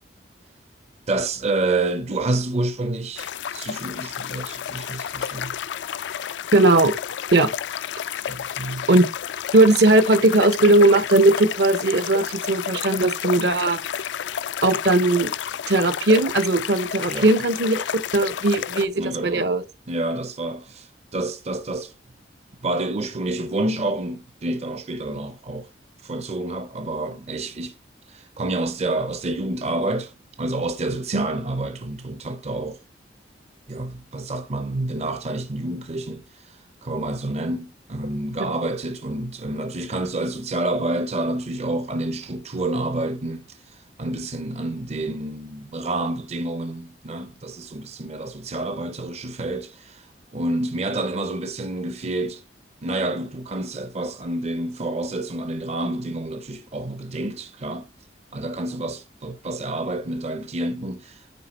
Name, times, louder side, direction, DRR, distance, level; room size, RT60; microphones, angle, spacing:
voice 1, 1.1-5.6 8.3-8.9 17.1-17.3 19.0-19.5 19.9-21.9 22.6-25.7 26.0-27.8 28.1-32.8 33.7-52.4 52.8-57.9 58.3-61.3, right 2 dB, 35° right, 0.6 m, -28 dB
sound 1, 3.2-18.8, left 9 dB, 75° left, 0.4 m, -31 dB
voice 2, 6.5-6.9 7.3-7.5 8.9-9.1 9.5-13.8 14.6-15.3 15.7-17.8 18.1-19.6 31.1-31.3 38.4-38.5, right 2 dB, 65° right, 0.8 m, -18 dB
9.5 x 3.5 x 4.2 m
head